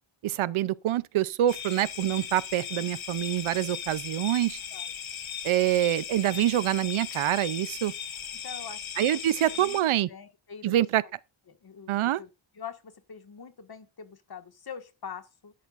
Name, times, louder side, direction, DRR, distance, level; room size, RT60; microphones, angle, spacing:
voice 1, 0.2-4.6 5.4-7.9 9.0-10.1 10.6-11.0 11.9-12.2, right 13 dB, 90° right, 0.6 m, -26 dB
sound 1, 1.5-9.8, left 8 dB, 75° left, 1.4 m, -38 dB
voice 2, 8.4-9.2 9.5-9.8 10.1-10.7 11.5-12.3 12.6-15.5, left 7 dB, 50° left, 1.8 m, -44 dB
11.0 x 11.0 x 2.5 m
wide cardioid pair, 105°, 47 cm